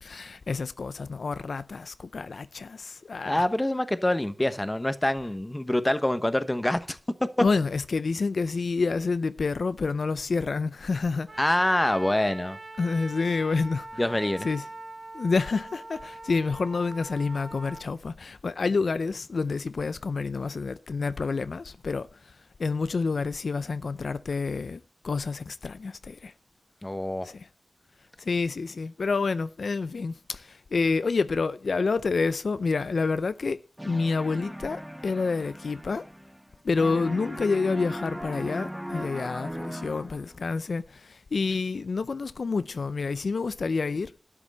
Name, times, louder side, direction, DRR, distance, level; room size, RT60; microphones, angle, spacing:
voice 1, 0.0-3.5 7.4-11.4 12.8-13.9 14.4-14.7 15.1-22.3 22.6-26.3 27.2-27.5 28.2-36.0 36.6-44.1, left 4 dB, 85° left, 0.4 m, -28 dB
voice 2, 3.3-7.0 7.4-7.5 11.4-12.6 14.0-14.5 26.8-27.3, left 1 dB, 20° left, 1.0 m, -25 dB
Trumpet, 11.3-17.9, right 2 dB, 45° right, 1.7 m, -42 dB
sound 1, 33.8-36.5 36.8-40.4, equal, 5° right, 0.5 m, -38 dB
12.0 x 6.0 x 7.4 m
wide cardioid pair, 75°, 0 cm